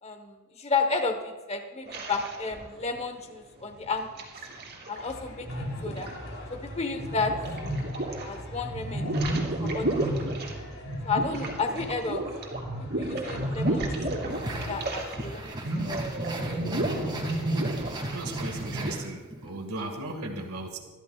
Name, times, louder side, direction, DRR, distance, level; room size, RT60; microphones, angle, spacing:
voice 1, 0.0-4.1 4.9-6.1 6.5-7.3 7.6-7.8 8.2-9.0 9.6-10.3 11.0-12.2 12.8-14.0 14.6-15.6 15.9-16.2, left 4 dB, 30° left, 6 dB, 1.1 m, -32 dB
sound 1, 1.9-3.0 3.7-5.0 5.4-8.3 8.6-15.3 15.5-18.9, right 1 dB, 50° right, 2.9 m, -32 dB
sound 2, 5.0-15.5, left 1 dB, 65° left, 3.8 m, -43 dB
sound 3, 14.3-19.5, right 1 dB, 20° right, 1.9 m, -36 dB
voice 2, 18.1-20.8, right 2 dB, 90° right, 4 dB, 1.8 m, -36 dB
22.5 x 14.0 x 2.3 m, 1.3 s
head